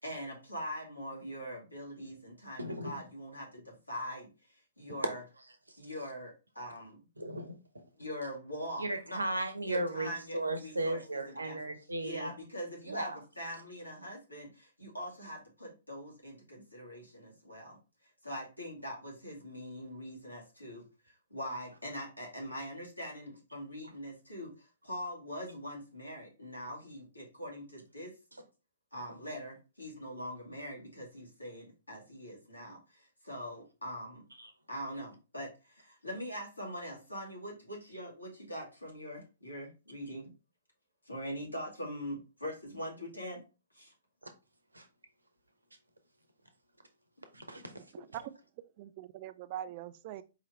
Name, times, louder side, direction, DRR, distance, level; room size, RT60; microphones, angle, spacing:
voice 1, 0.0-5.2 5.8-7.0 7.9-9.2 9.6-11.6 12.0-28.2 28.9-34.2 34.7-40.3 41.0-43.4 43.7-43.9, equal, 85° left, 2.2 m, -43 dB
voice 2, 2.6-2.9 7.2-7.6 8.8-12.3 12.9-13.2 34.4-34.5 44.7-44.8 47.3-48.0, right 2 dB, 80° right, 0.9 m, -36 dB
voice 3, 47.9-48.3 48.8-50.2, right 12 dB, 35° right, 0.3 m, -42 dB
4.6 x 3.0 x 3.3 m
figure-of-eight pair, 115°, 0 cm